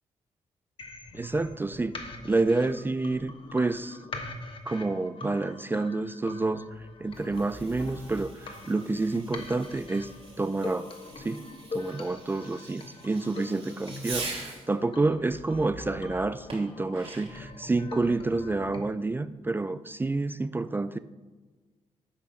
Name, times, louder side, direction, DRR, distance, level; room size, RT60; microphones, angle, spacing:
sound 1, 0.8-18.8, left 3 dB, 45° left, 1.2 m, -43 dB
voice 1, 1.1-4.0 4.7-10.1 10.4-10.9 11.2-11.4 11.7-21.0, right 3 dB, 15° right, 14 dB, 0.3 m, -29 dB
Fireworks, 7.0-14.7 16.5-17.5, right 3 dB, 50° right, 2.9 m, -43 dB
8.1 x 5.0 x 5.6 m, 1.3 s
cardioid pair, 75°, 12 cm